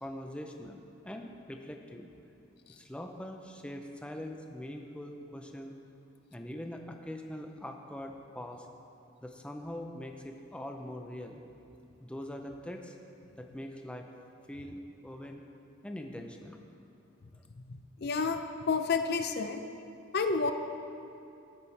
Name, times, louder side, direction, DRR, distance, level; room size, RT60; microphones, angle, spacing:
voice 1, 0.0-2.1 2.8-5.7 6.3-8.7 9.2-11.4 12.0-13.0 13.4-14.1 14.5-15.4 15.8-16.6, left 1 dB, 5° left, 3 dB, 0.5 m, -42 dB
voice 2, 18.0-18.4 18.7-19.6 20.1-20.5, left 4 dB, 50° left, 7 dB, 0.5 m, -29 dB
14.0 x 9.8 x 3.3 m, 2.7 s
head